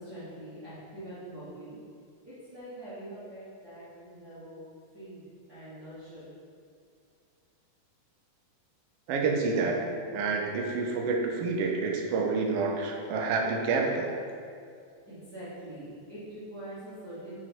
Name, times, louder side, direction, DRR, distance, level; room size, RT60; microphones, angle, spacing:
voice 1, 0.0-1.8 2.2-4.7 4.9-5.2 5.5-6.3 14.8-17.3, right 1 dB, 40° right, -13 dB, 1.5 m, -44 dB
voice 2, 9.1-14.1, right 4 dB, 90° right, 1 dB, 1.3 m, -28 dB
6.1 x 4.5 x 4.5 m, 2.3 s
omnidirectional pair, 3.6 m